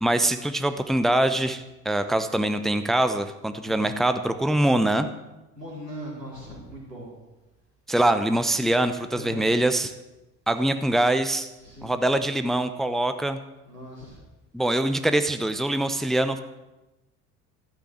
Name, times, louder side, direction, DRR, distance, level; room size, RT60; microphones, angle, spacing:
voice 1, 0.0-5.1 7.9-9.9 10.5-11.5 11.8-13.4 14.5-16.4, right 1 dB, ahead, 10 dB, 0.8 m, -23 dB
voice 2, 5.5-7.1 9.1-9.5 11.5-12.0 13.6-14.2, equal, 90° right, -3 dB, 4.5 m, -40 dB
14.0 x 8.9 x 7.6 m, 1.0 s
figure-of-eight pair, 65°, 47 cm